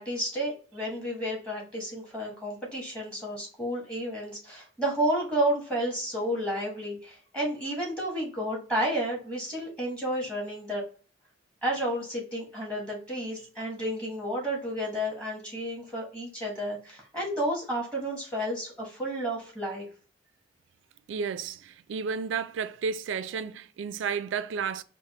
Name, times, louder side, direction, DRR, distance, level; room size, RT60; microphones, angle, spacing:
voice 1, 0.0-10.8 11.6-19.9, right 1 dB, 5° left, 1.0 m, -31 dB
voice 2, 21.1-24.8, right 6 dB, 90° right, 0.3 m, -32 dB
4.9 x 2.0 x 2.8 m
head